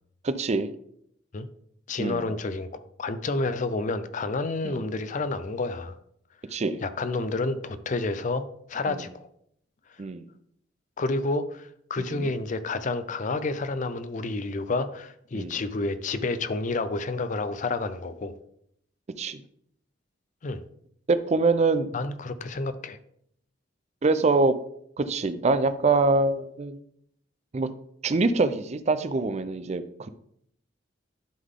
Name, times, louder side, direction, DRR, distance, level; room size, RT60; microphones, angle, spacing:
voice 1, 0.2-0.7 2.0-2.3 4.6-4.8 6.5-6.8 8.9-9.0 10.0-10.3 12.1-12.3 15.3-15.6 19.2-19.4 21.1-21.9 24.0-24.5 25.0-26.8 27.5-27.7 28.0-30.1, right 3 dB, 35° right, 12 dB, 0.5 m, -24 dB
voice 2, 1.9-2.7 3.0-6.0 6.8-9.3 11.0-18.3 20.4-20.6 21.9-23.0, left 3 dB, 40° left, 12 dB, 0.5 m, -29 dB
11.0 x 3.8 x 3.7 m, 0.71 s
head